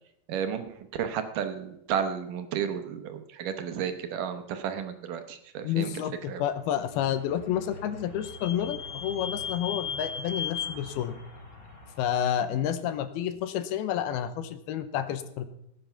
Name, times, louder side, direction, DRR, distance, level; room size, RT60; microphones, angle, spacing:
voice 1, 0.3-5.9 6.3-6.4, right 8 dB, 75° right, 8 dB, 2.1 m, -32 dB
voice 2, 5.6-11.2 12.0-15.5, left 10 dB, 80° left, 11 dB, 2.7 m, -30 dB
Vehicle / Squeak, 6.8-12.4, left 6 dB, 25° left, 2.4 m, -38 dB
18.0 x 9.0 x 5.7 m, 0.79 s
omnidirectional pair, 4.7 m